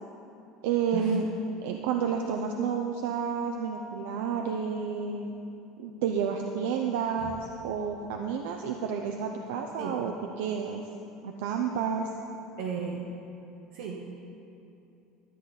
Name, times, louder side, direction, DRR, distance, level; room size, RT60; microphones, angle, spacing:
voice 1, 0.6-1.3 1.6-5.3 5.8-10.8 11.2-12.1, right 6 dB, 85° right, 2 dB, 0.6 m, -30 dB
voice 2, 12.6-13.0 13.7-14.2, right 7 dB, 65° right, -2 dB, 0.9 m, -35 dB
12.5 x 8.4 x 4.0 m, 2.8 s
cardioid pair, 170°, 0 cm